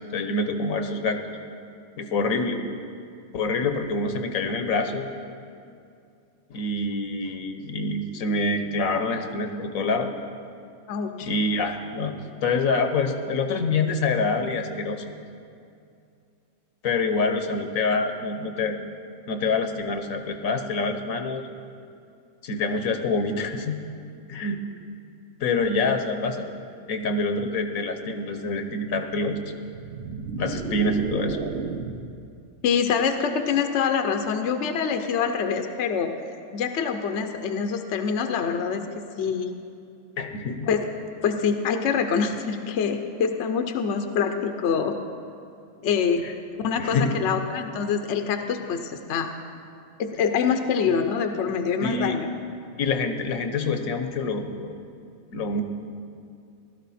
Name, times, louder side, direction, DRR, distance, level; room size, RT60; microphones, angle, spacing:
voice 1, 0.1-1.2 2.0-2.6 3.3-5.1 6.5-10.1 11.2-12.1 12.4-15.0 16.8-18.8 19.3-21.4 22.4-23.8 24.3-24.6 25.4-26.5 26.9-29.4 30.4-31.4 40.2-40.7 46.2-46.3 46.8-47.1 51.8-52.2 52.8-54.7 55.3-55.6, left 3 dB, 75° left, 6 dB, 1.3 m, -26 dB
voice 2, 10.9-11.3 32.6-36.1 36.5-38.8 39.2-39.5 40.6-40.8 41.2-45.0 45.8-46.2 46.5-49.3 50.0-52.3, left 6 dB, 60° left, 6 dB, 1.0 m, -25 dB
sound 1, 29.6-32.2, right 4 dB, 55° right, 1.0 m, -32 dB
16.5 x 12.5 x 4.2 m, 2.5 s
omnidirectional pair, 1.4 m